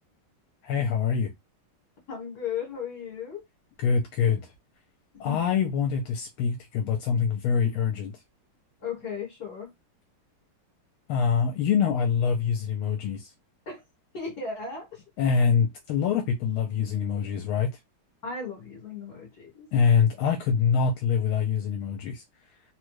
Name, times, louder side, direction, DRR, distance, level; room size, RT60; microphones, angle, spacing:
voice 1, 0.6-1.3 3.8-4.5 5.2-8.1 11.1-13.3 15.2-17.8 19.7-22.2, left 6 dB, 80° left, 1.4 m, -25 dB
voice 2, 2.1-3.4 5.1-5.4 8.8-9.7 13.7-13.8 14.1-15.0 18.2-19.7, left 5 dB, 50° left, 1.7 m, -36 dB
3.9 x 2.2 x 3.1 m
omnidirectional pair, 2.4 m